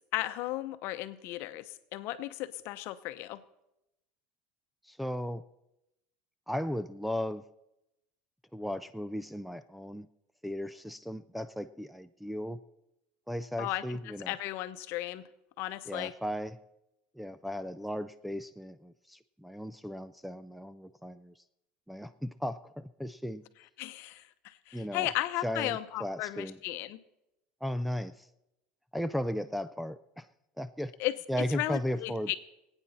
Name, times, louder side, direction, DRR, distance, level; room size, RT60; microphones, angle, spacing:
voice 1, 0.1-3.4 13.6-15.2 15.6-16.1 23.8-27.0 31.0-32.4, left 15 dB, 60° left, 11 dB, 0.8 m, -35 dB
voice 2, 4.9-5.4 6.5-7.4 8.5-10.1 10.4-12.6 13.3-14.3 15.9-16.6 17.2-21.3 21.9-23.4 24.7-25.1 25.4-26.6 27.6-28.1 28.9-30.2 30.6-30.9 31.3-32.3, equal, ahead, 9 dB, 0.4 m, -36 dB
25.0 x 9.0 x 4.2 m, 0.89 s
supercardioid pair, 125°, 5 cm